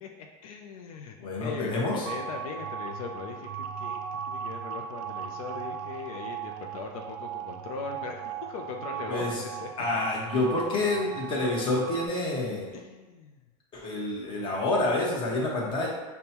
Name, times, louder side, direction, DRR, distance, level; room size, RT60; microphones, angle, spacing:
voice 1, 0.0-3.5 3.8-4.0 4.3-9.7 12.7-13.4, left 5 dB, 80° left, 2 dB, 0.5 m, -39 dB
voice 2, 1.2-2.1 9.1-9.4 9.8-12.8 13.7-15.9, left 2 dB, 30° left, -3 dB, 1.0 m, -28 dB
sound 1, 2.0-12.1, right 7 dB, 60° right, 0.4 m, -37 dB
5.1 x 2.2 x 2.9 m, 1.3 s
supercardioid pair, 140°, 18 cm